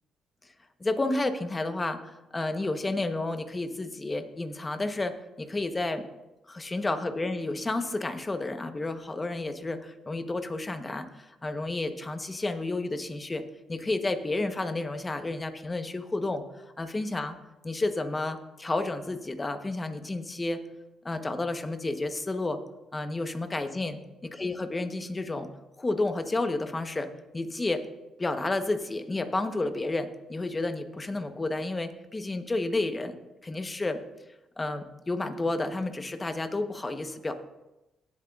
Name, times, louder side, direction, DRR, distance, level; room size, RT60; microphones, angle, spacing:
voice 1, 0.8-6.0 6.5-13.4 13.7-16.4 16.8-17.3 17.6-20.7 21.0-22.6 22.9-25.5 25.8-27.1 27.3-27.9 28.2-33.2 33.4-34.0 34.6-37.3, left 2 dB, 20° left, 8 dB, 0.9 m, -31 dB
16.5 x 7.8 x 2.4 m, 0.97 s
cardioid pair, 90°, 0 cm